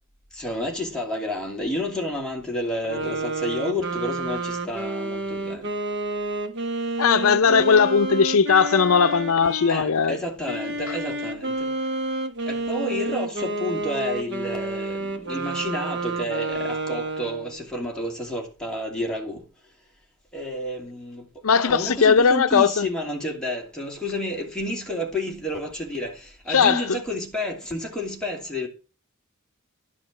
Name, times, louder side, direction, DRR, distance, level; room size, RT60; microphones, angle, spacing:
voice 1, 0.3-5.7 9.7-11.7 12.5-19.5 20.3-28.7, left 1 dB, 5° left, 2.7 m, -30 dB
sound 1, 2.8-9.9 10.4-17.6, right 2 dB, 55° right, 1.5 m, -30 dB
voice 2, 7.0-10.2 21.4-22.9 26.5-27.0, left 6 dB, 75° left, 0.6 m, -18 dB
11.5 x 5.0 x 7.3 m
head